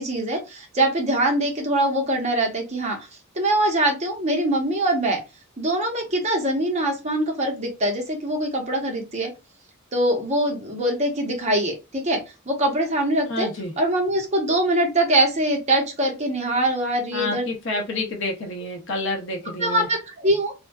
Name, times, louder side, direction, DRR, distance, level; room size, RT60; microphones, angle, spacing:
voice 1, 0.0-3.1 3.3-5.2 5.6-9.3 9.9-12.2 12.5-13.5 13.8-17.4 19.6-20.5, right 1 dB, 35° right, 1 dB, 0.7 m, -23 dB
voice 2, 13.3-13.7 17.1-19.9, left 2 dB, 65° left, 2 dB, 0.6 m, -29 dB
2.5 x 2.2 x 2.2 m, 0.27 s
head